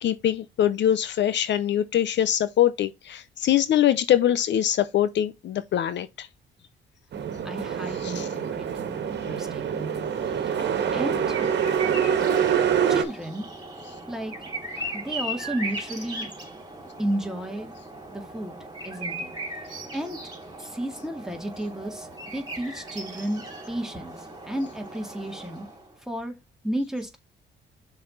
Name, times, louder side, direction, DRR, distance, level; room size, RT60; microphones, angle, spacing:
voice 1, 0.0-6.3 8.0-8.3, left 11 dB, 65° left, 0.7 m, -23 dB
sound 1, 7.1-13.0, right 8 dB, 60° right, 1.5 m, -25 dB
voice 2, 7.4-10.1 10.6-11.4 12.9-13.5 14.1-14.3 14.9-16.3 17.0-17.7 18.1-18.6 18.8-19.3 19.9-20.2 20.6-25.7 26.1-26.3 26.6-27.2, right 1 dB, ahead, 2.1 m, -33 dB
sound 2, 10.0-25.9, right 1 dB, 20° right, 3.4 m, -38 dB
6.4 x 4.1 x 5.5 m
cardioid pair, 90°, 20 cm